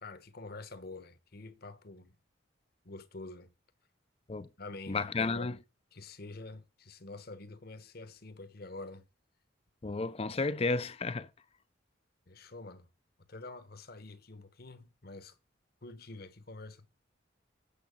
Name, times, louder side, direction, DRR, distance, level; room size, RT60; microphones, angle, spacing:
voice 1, 0.0-2.2 2.8-3.5 4.6-5.6 5.9-9.1 12.3-12.9 13.3-15.4 15.8-16.9, left 2 dB, 50° left, 1.1 m, -47 dB
voice 2, 4.9-5.5 9.8-11.3, left 3 dB, 30° left, 0.5 m, -32 dB
8.5 x 7.0 x 6.9 m
head